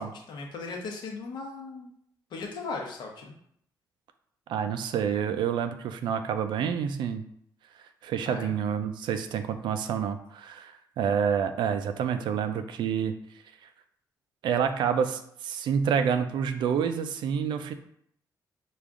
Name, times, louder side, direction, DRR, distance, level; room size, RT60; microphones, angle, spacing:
voice 1, 0.0-1.9 2.3-3.4 8.2-8.5, left 3 dB, 75° left, 1 dB, 0.9 m, -37 dB
voice 2, 4.5-7.2 8.0-13.1 14.4-17.7, right 7 dB, 90° right, 9 dB, 0.4 m, -28 dB
5.1 x 2.4 x 3.6 m, 0.69 s
cardioid pair, 125°, 8 cm